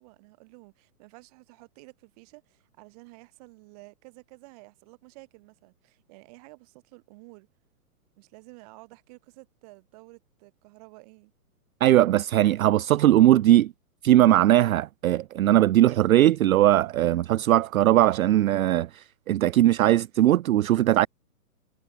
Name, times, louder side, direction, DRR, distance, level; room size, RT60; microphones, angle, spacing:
voice 1, 0.0-7.5 8.2-11.3, right 26 dB, 25° right, 6.4 m, -51 dB
voice 2, 11.8-13.7 14.0-21.1, right 13 dB, 65° right, 0.5 m, -20 dB
hypercardioid pair, 175°, 45 cm